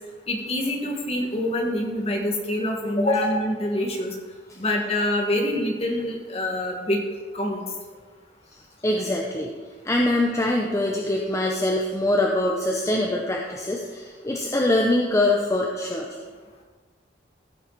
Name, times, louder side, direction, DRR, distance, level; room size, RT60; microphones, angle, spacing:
voice 1, 0.3-4.1 4.6-7.0 7.3-7.6, left 1 dB, 35° left, 1 dB, 1.8 m, -25 dB
voice 2, 8.8-9.5 9.8-16.1, left 1 dB, 15° left, 0 dB, 0.8 m, -23 dB
16.0 x 7.2 x 4.1 m, 1.5 s
head